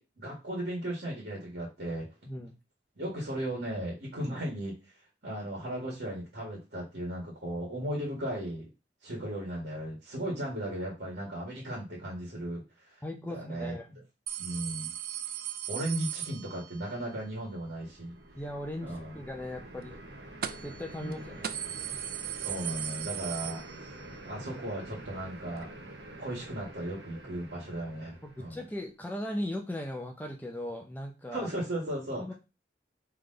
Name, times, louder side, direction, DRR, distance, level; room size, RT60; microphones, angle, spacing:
voice 1, 0.0-2.1 2.9-4.7 5.2-8.7 9.0-12.9 13.3-14.0 14.4-14.9 15.7-18.2 18.8-19.2 21.0-21.3 22.3-23.9 24.2-25.7 26.2-28.6 31.3-32.3, right 1 dB, 70° right, -3 dB, 1.7 m, -36 dB
voice 2, 13.0-13.9 18.4-20.0 20.6-21.5 28.2-31.5 32.2-32.3, left 1 dB, 10° left, 2 dB, 0.6 m, -38 dB
sound 1, 14.3-17.0 20.4-20.8 21.1-21.2 21.4-24.2 24.5-24.6 25.6-25.7, right 10 dB, 55° right, 0.3 m, -37 dB
sound 2, 17.5-28.8, right 1 dB, 90° right, 0.9 m, -47 dB
3.9 x 3.4 x 3.8 m, 0.28 s
head